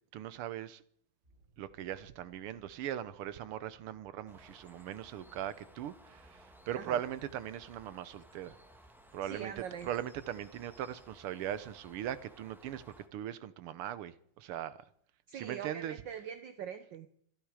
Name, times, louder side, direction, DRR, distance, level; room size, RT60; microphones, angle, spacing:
voice 1, 0.1-0.8 1.6-8.6 9.1-9.5 9.8-12.8 13.1-14.8 15.3-16.0, right 11 dB, 85° right, 1.8 m, -40 dB
sound 1, 1.2-8.0, right 3 dB, 25° right, 5.0 m, -68 dB
Bird, 4.3-13.1, equal, ahead, 1.4 m, -58 dB
voice 2, 9.2-9.9 15.3-17.1, right 8 dB, 65° right, 1.4 m, -42 dB
27.0 x 11.0 x 4.9 m
omnidirectional pair, 2.4 m